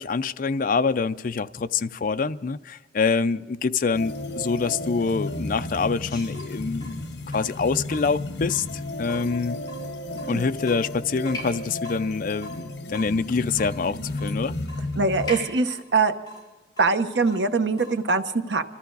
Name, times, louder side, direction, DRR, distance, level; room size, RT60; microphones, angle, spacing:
voice 1, 0.0-7.0 7.3-8.7 9.0-9.6 10.3-14.5, left 4 dB, 50° left, 0.4 m, -25 dB
sound 1, 3.9-15.5, left 2 dB, 75° left, 1.1 m, -33 dB
Water tap faucet / Drip, 6.1-18.1, left 2 dB, 25° left, 7.1 m, -43 dB
voice 2, 10.1-10.4 15.0-16.1 16.8-18.6, right 4 dB, 75° right, 1.0 m, -23 dB
25.5 x 14.0 x 3.9 m
head